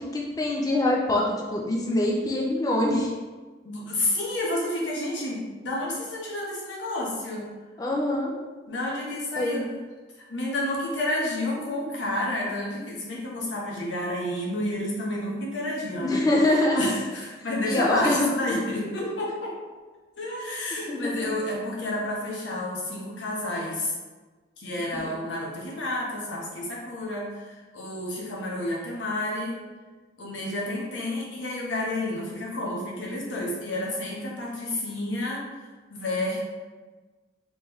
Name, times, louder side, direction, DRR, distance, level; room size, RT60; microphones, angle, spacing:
voice 1, 0.1-1.2 1.5-3.1 7.8-8.3 9.4-9.7 16.0-16.8 17.6-18.3 19.0-19.1 20.9-21.0 25.0-25.2, left 1 dB, 20° left, -2 dB, 0.4 m, -24 dB
voice 2, 3.6-7.5 8.7-9.7 10.3-16.3 16.7-19.6 20.2-23.9 24.6-29.6 30.2-35.4 35.9-36.4, left 1 dB, 80° left, -3 dB, 0.9 m, -30 dB
3.5 x 3.1 x 3.1 m, 1.3 s
head